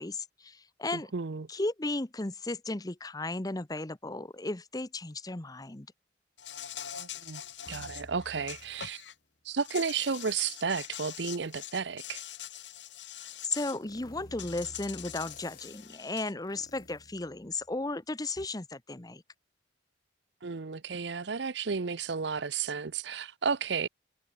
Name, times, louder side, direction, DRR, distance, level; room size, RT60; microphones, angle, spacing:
voice 1, 0.0-1.1 1.5-5.9 13.4-19.2, left 2 dB, 20° left, 0.9 m, -35 dB
voice 2, 0.9-1.5 6.9-7.4 7.7-9.0 9.4-12.2 20.4-23.9, right 5 dB, 70° right, 0.7 m, -33 dB
Insect, 6.4-9.1 9.5-13.8 14.4-16.3, left 10 dB, 75° left, 3.0 m, -44 dB
sound 1, 7.7-9.1 9.7-10.7 11.2-17.9 18.4-18.5, left 2 dB, 50° left, 4.8 m, -54 dB
head